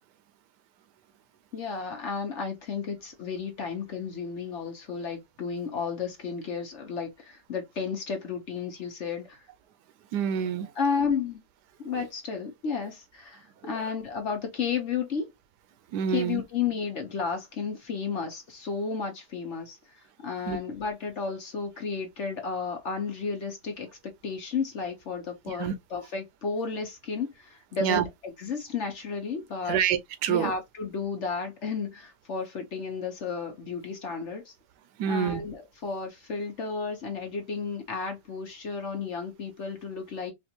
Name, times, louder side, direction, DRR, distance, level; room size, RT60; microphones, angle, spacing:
voice 1, 1.5-9.4 10.7-11.4 11.8-15.3 16.1-19.8 20.2-23.9 24.2-29.8 30.3-34.5 35.1-40.3, left 5 dB, 55° left, 1.0 m, -33 dB
voice 2, 10.1-10.7 15.9-16.4 20.5-20.6 25.5-25.7 27.8-28.0 29.7-30.5 35.0-35.4, right 8 dB, 85° right, 1.3 m, -27 dB
4.3 x 2.5 x 2.8 m
omnidirectional pair, 1.7 m